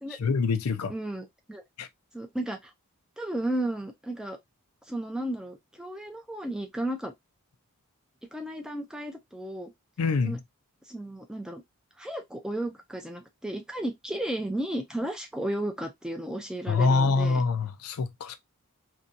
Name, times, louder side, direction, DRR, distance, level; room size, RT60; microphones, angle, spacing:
voice 1, 0.2-0.9 1.8-1.9 10.0-10.4 16.7-18.4, left 4 dB, 80° left, 0.4 m, -25 dB
voice 2, 0.9-1.6 2.1-2.7 3.2-4.4 4.9-7.1 8.3-9.7 10.2-10.4 10.8-11.6 12.0-17.4, right 1 dB, 5° right, 0.4 m, -34 dB
2.7 x 2.3 x 2.5 m
head